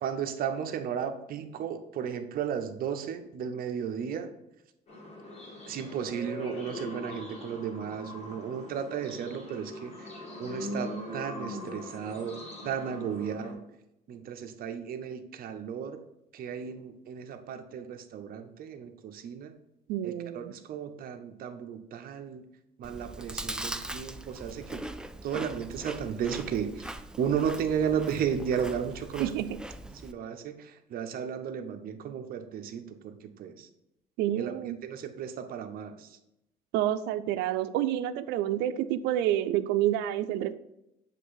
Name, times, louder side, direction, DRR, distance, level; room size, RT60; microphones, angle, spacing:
voice 1, 0.0-4.3 5.7-10.1 10.4-12.4 12.6-13.6 14.1-16.0 16.3-19.5 20.0-22.5 22.8-24.8 25.2-26.9 27.2-29.3 29.9-33.7 34.3-36.2, right 8 dB, 60° right, 7 dB, 0.7 m, -34 dB
sound 1, 4.9-13.5, left 1 dB, 40° left, 2.1 m, -41 dB
voice 2, 19.9-20.5 29.2-29.6 34.2-34.8 36.7-40.5, right 12 dB, 90° right, 13 dB, 0.4 m, -28 dB
Chewing mastication, 22.8-30.1, right 1 dB, 5° right, 0.3 m, -41 dB
7.4 x 3.3 x 4.0 m, 0.87 s
cardioid pair, 110°, 17 cm